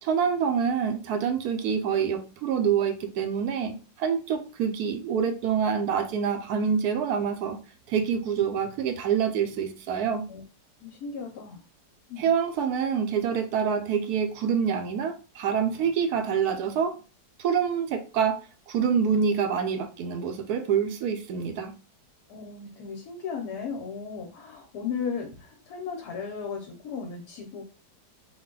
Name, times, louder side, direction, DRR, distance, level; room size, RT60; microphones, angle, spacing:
voice 1, 0.0-7.6 7.9-10.3 12.2-16.9 17.4-18.4 18.7-21.7, right 7 dB, 70° right, 7 dB, 1.0 m, -26 dB
voice 2, 10.8-11.6 12.1-12.3 22.3-27.6, left 6 dB, 65° left, 2 dB, 1.2 m, -36 dB
4.0 x 2.2 x 3.7 m, 0.35 s
omnidirectional pair, 1.9 m